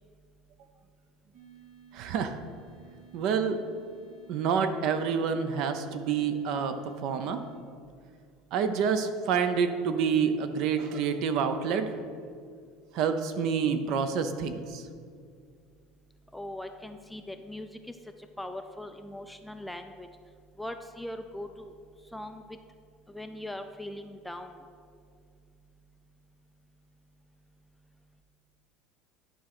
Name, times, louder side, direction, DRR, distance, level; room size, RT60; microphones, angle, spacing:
sound 1, 1.3-7.5, right 6 dB, 80° right, 1.7 m, -55 dB
voice 1, 1.9-2.4 3.1-3.6 4.3-6.8 7.0-7.4 8.5-11.9 12.9-14.8, right 6 dB, 55° right, 9 dB, 0.6 m, -28 dB
voice 2, 16.3-18.0 18.4-20.1 20.6-21.7 22.1-22.4 23.1-24.6, left 1 dB, 5° left, 7 dB, 0.3 m, -40 dB
11.0 x 3.8 x 6.0 m, 2.2 s
cardioid pair, 150°, 0 cm